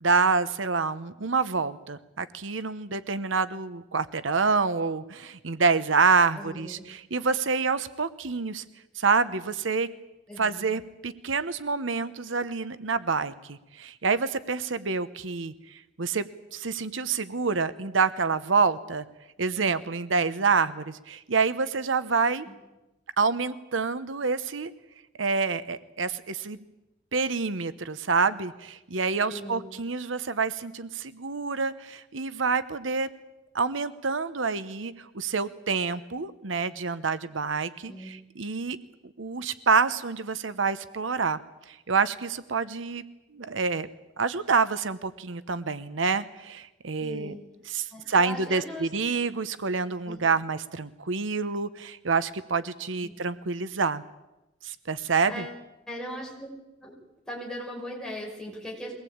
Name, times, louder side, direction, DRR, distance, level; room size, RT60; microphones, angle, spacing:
voice 1, 0.0-8.6 8.9-9.9 10.4-16.2 16.5-19.0 19.4-22.5 23.2-24.7 25.2-26.6 27.1-33.1 33.5-38.8 39.2-41.4 41.7-43.0 43.3-43.9 44.2-47.4 47.7-54.0 54.6-55.4, right 4 dB, 85° right, 14 dB, 1.0 m, -27 dB
voice 2, 6.4-6.8 10.3-10.7 22.5-22.6 29.3-29.7 37.9-38.1 47.0-47.4 47.9-48.9 50.1-50.2 53.0-53.1 55.3-55.5 55.9-56.5 56.8-56.9 57.3-58.9, equal, 5° left, -2 dB, 5.7 m, -39 dB
23.0 x 18.5 x 8.7 m, 0.97 s
head